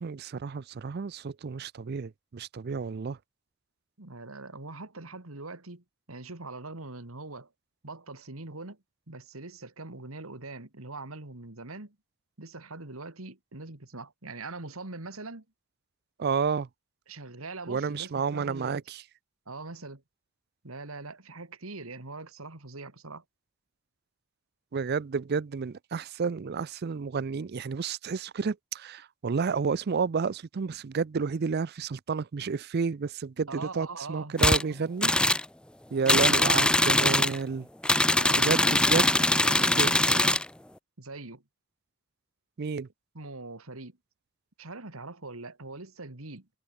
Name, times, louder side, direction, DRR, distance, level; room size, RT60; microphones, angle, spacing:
voice 1, 0.0-3.2 16.2-16.7 17.7-19.0 24.7-35.1 35.9-37.7 38.4-39.1 39.8-40.0 42.6-42.9, right 5 dB, 50° right, 0.4 m, -31 dB
voice 2, 4.0-7.5 7.8-8.8 9.1-12.0 12.4-15.4 17.1-18.8 19.5-20.0 20.6-23.2 33.5-34.4 34.7-34.8 38.1-40.4 41.0-41.4 43.1-44.0 44.6-46.5, right 3 dB, 90° right, 2.6 m, -42 dB
sound 1, 34.4-34.6 35.0-35.4 36.1-37.4 37.8-40.5, left 1 dB, 5° left, 0.5 m, -22 dB
head